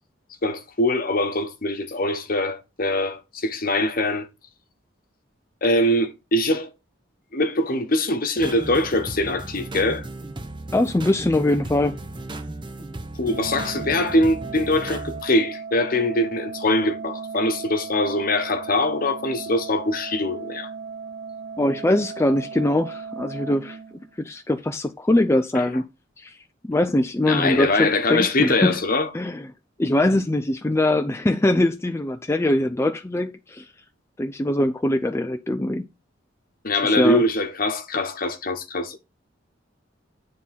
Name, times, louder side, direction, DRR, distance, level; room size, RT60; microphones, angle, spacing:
voice 1, 0.4-4.3 5.6-6.7 7.3-10.0 13.2-20.7 27.3-29.1 36.6-39.0, left 1 dB, 45° left, 1.1 m, -23 dB
sound 1, 8.4-15.2, right 2 dB, 25° right, 0.9 m, -35 dB
voice 2, 10.7-12.0 21.6-23.8 24.2-25.9 26.2-26.4 26.6-28.8 29.1-29.5 29.8-33.7 34.2-35.9 36.8-37.2, left 1 dB, 15° left, 0.4 m, -22 dB
Organ, 13.2-24.3, right 5 dB, 75° right, 1.6 m, -36 dB
9.4 x 3.7 x 5.7 m
head